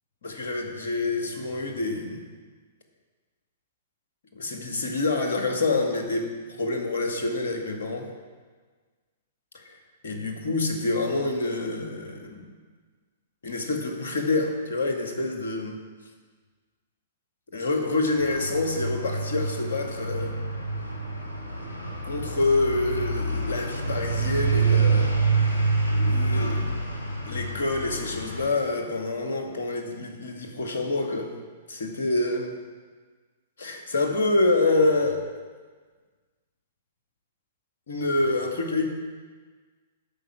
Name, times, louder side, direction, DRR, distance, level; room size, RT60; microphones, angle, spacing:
voice 1, 0.2-2.2 4.3-6.3 6.6-8.1 9.5-9.8 10.0-12.4 13.4-15.8 17.5-20.3 22.0-25.1 25.4-25.6 25.9-26.6 27.2-31.3 31.7-32.5 33.6-35.2 37.9-38.9, left 2 dB, 70° left, 3 dB, 1.9 m, -27 dB
sound 1, 18.2-28.5, right 3 dB, 90° left, 2.0 m, -27 dB
11.5 x 5.4 x 7.3 m, 1.4 s
figure-of-eight pair, 110°, 0 cm